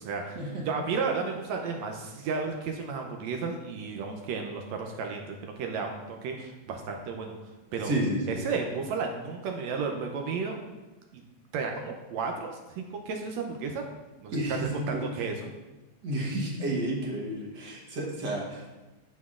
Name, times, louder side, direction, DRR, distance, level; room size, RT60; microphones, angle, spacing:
voice 1, 0.0-7.3 7.7-7.9 8.3-10.6 11.5-13.8 14.2-15.5, right 5 dB, 75° right, 3 dB, 1.8 m, -33 dB
voice 2, 7.8-8.4 14.3-15.1 16.0-18.7, right 1 dB, 55° right, -3 dB, 1.2 m, -31 dB
9.2 x 6.4 x 2.4 m, 1.1 s
omnidirectional pair, 3.3 m